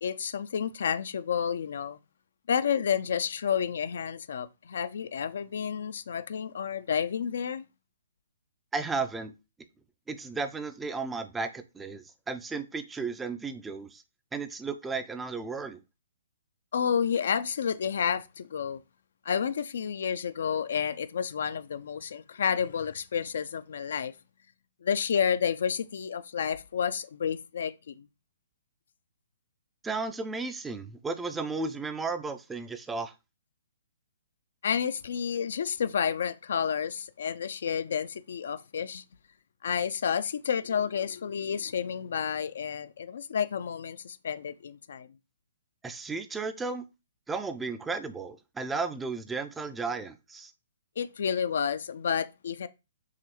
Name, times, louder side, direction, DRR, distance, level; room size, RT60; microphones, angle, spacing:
voice 1, 0.0-2.0 2.5-7.6 16.7-18.8 19.3-24.1 24.8-28.1 34.6-39.0 39.6-45.1 51.0-52.7, left 7 dB, 60° left, 0.3 m, -30 dB
voice 2, 8.7-9.3 10.1-14.0 14.3-15.8 29.8-33.1 45.8-46.9 47.3-50.5, right 4 dB, 10° right, 0.4 m, -34 dB
4.8 x 3.0 x 3.0 m
figure-of-eight pair, 125°, 0 cm